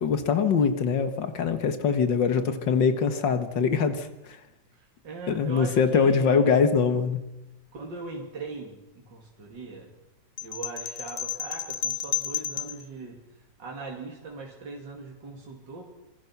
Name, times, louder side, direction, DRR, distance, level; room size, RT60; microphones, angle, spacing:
voice 1, 0.0-4.4 5.3-7.2, left 6 dB, 80° left, 9 dB, 2.2 m, -23 dB
voice 2, 4.7-6.5 7.7-9.9 10.4-13.2 13.6-15.9, right 3 dB, 75° right, -1 dB, 3.3 m, -40 dB
sound 1, 10.4-12.8, left 9 dB, 65° left, 1.6 m, -32 dB
26.5 x 23.0 x 6.0 m, 0.96 s
omnidirectional pair, 2.0 m